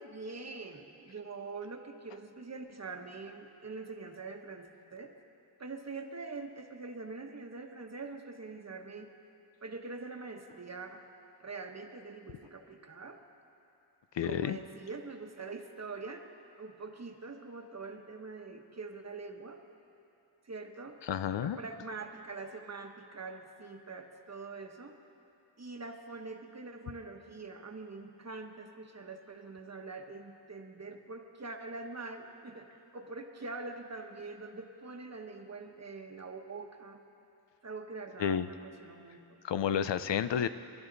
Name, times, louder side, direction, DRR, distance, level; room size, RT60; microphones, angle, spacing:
voice 1, 0.0-5.1 5.6-9.1 9.6-11.0 11.4-13.2 14.2-16.2 16.6-19.6 20.4-21.0 21.4-25.0 25.6-37.0 37.6-39.2, right 3 dB, 40° right, 4 dB, 1.1 m, -44 dB
voice 2, 14.1-14.6 21.0-21.6 38.2-38.5 39.4-40.5, left 8 dB, 80° left, 12 dB, 0.6 m, -30 dB
28.5 x 11.5 x 4.0 m, 2.8 s
wide cardioid pair, 100°, 43 cm